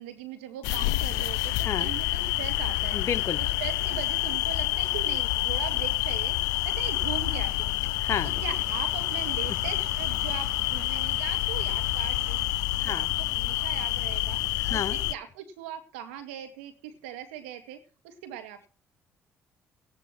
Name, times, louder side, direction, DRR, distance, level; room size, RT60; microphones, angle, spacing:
voice 1, 0.0-3.0 3.6-6.4 6.6-7.8 8.2-12.4 12.8-14.4 14.7-17.8 18.0-18.7, right 10 dB, 90° right, 6 dB, 2.2 m, -40 dB
sound 1, 0.6-15.1, left 18 dB, 80° left, 0.5 m, -28 dB
voice 2, 1.6-1.9 2.9-3.4 8.0-8.3 12.8-13.1 14.6-15.0, left 8 dB, 50° left, 9 dB, 1.1 m, -31 dB
sound 2, 8.1-12.5, right 4 dB, 50° right, 4.9 m, -46 dB
15.5 x 11.0 x 4.3 m, 0.37 s
hypercardioid pair, 55°, 6 cm